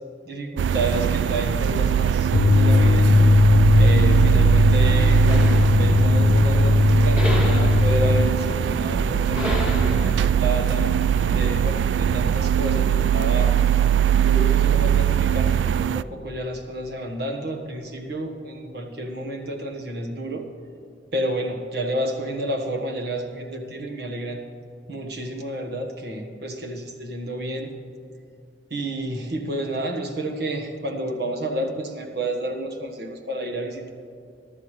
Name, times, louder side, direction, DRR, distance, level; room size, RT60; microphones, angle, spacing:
voice 1, 0.2-3.3 3.8-10.9 11.3-13.7 14.2-20.4 21.1-24.4 24.9-27.7 28.7-33.9, right 1 dB, 60° right, 4 dB, 1.4 m, -30 dB
sound 1, 0.6-16.0, right 9 dB, 75° right, 0.3 m, -21 dB
sound 2, 2.3-8.3, left 3 dB, 85° left, 0.5 m, -18 dB
sound 3, 5.3-11.4, left 1 dB, 5° right, 2.5 m, -31 dB
22.0 x 12.0 x 3.2 m, 2.4 s
head